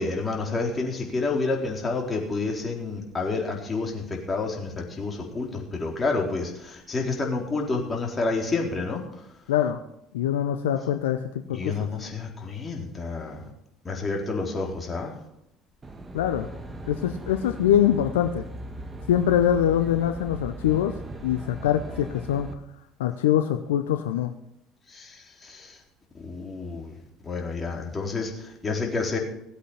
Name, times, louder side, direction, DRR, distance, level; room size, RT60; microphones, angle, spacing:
voice 1, 0.0-9.0 11.5-13.5 13.8-15.1 24.9-25.8 26.1-26.9 27.2-29.2, left 3 dB, 25° left, 0 dB, 4.1 m, -29 dB
voice 2, 9.5-9.8 10.1-11.2 11.5-11.9 16.1-16.5 16.9-18.5 19.1-20.9 21.2-22.5 23.0-24.3, left 10 dB, 80° left, 8 dB, 0.6 m, -23 dB
Aircraft, 15.8-22.5, right 1 dB, 25° right, 1.7 m, -38 dB
17.0 x 8.3 x 5.7 m, 0.80 s
hypercardioid pair, 60°, 0 cm